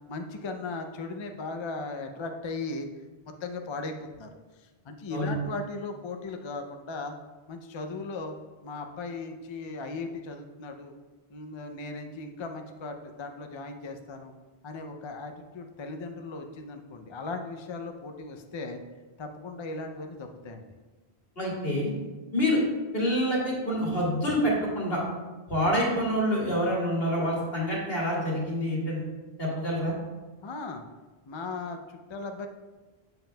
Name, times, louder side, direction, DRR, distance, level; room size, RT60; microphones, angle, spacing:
voice 1, 0.1-2.9 3.4-4.3 4.6-7.1 7.5-8.4 8.6-10.9 11.3-14.3 14.6-18.8 19.2-20.7 25.5-25.7 30.4-30.8 31.3-31.8 32.1-32.5, left 3 dB, 45° left, 5 dB, 0.4 m, -37 dB
voice 2, 21.4-21.9 22.3-22.6 22.9-25.0 25.5-29.0 29.4-29.9, equal, 70° left, -5 dB, 2.2 m, -27 dB
7.7 x 7.2 x 2.2 m, 1.2 s
omnidirectional pair, 1.0 m